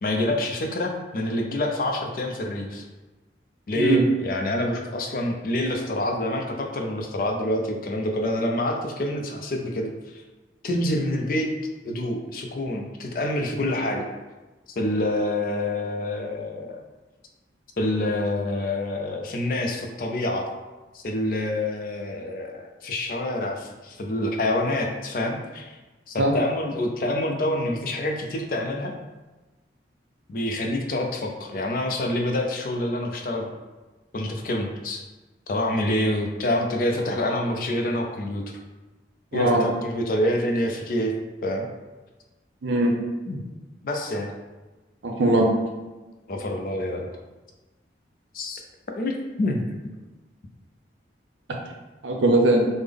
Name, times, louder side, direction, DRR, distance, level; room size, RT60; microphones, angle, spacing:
voice 1, 0.0-2.8 3.7-9.9 10.6-11.5 11.8-14.1 14.8-16.8 17.8-20.4 20.9-25.8 26.1-28.9 30.3-33.5 34.1-35.0 35.5-38.4 39.3-41.1 41.4-41.7 43.3-43.4 43.8-44.3 46.3-47.1 48.3-48.6 48.9-49.1 49.4-49.6, left 1 dB, 50° left, 2 dB, 0.4 m, -27 dB
voice 2, 3.7-4.1 26.2-26.3 39.3-39.6 42.6-42.9 45.0-45.5 52.0-52.6, right 2 dB, 85° right, 1 dB, 0.5 m, -20 dB
3.6 x 2.0 x 3.3 m, 1.2 s
head